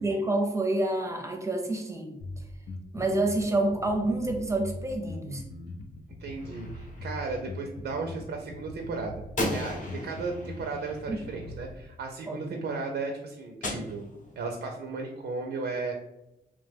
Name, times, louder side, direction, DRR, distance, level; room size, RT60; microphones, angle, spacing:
voice 1, 0.0-2.1 2.9-5.4 11.1-11.2 12.3-12.6, right 2 dB, 15° right, 4 dB, 0.5 m, -28 dB
Bass guitar, 2.2-11.8, left 2 dB, 85° left, 0.5 m, -41 dB
voice 2, 6.2-9.2 9.5-14.1 14.4-15.9, right 3 dB, 85° right, 3 dB, 0.4 m, -35 dB
Gunshot gunfire, 6.4-7.4 9.4-11.7 13.6-14.6, left 1 dB, 50° left, 0.7 m, -36 dB
2.9 x 2.1 x 3.3 m, 0.89 s
wide cardioid pair, 120°, 17 cm